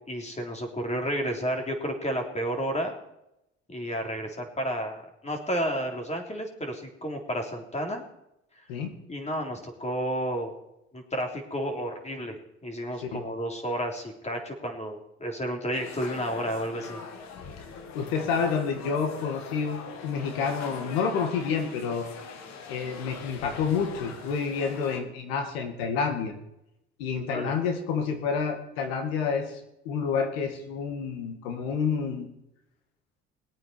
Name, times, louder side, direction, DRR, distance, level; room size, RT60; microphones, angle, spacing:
voice 1, 0.0-3.0 3.7-8.0 9.1-10.5 10.9-12.4 12.6-17.0 27.3-27.5, equal, 20° left, 3 dB, 3.8 m, -31 dB
sound 1, 15.7-25.0, left 5 dB, 65° left, 2.1 m, -42 dB
voice 2, 17.9-22.1 22.7-26.3 27.0-29.6 29.9-32.3, left 6 dB, 85° left, 6 dB, 2.1 m, -29 dB
20.0 x 8.8 x 4.7 m, 0.85 s
hypercardioid pair, 65°, 30 cm